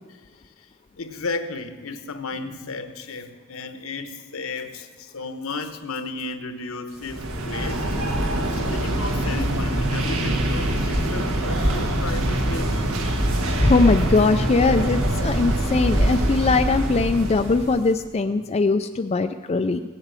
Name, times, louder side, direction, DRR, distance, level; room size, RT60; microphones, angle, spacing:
voice 1, 1.0-7.9 8.5-12.9, left 3 dB, 70° left, 9 dB, 1.1 m, -34 dB
sound 1, 7.0-17.8, right 1 dB, 80° right, 1.6 m, -24 dB
voice 2, 13.6-19.8, left 3 dB, 30° left, 7 dB, 0.4 m, -21 dB
17.0 x 8.1 x 7.5 m, 1.4 s
head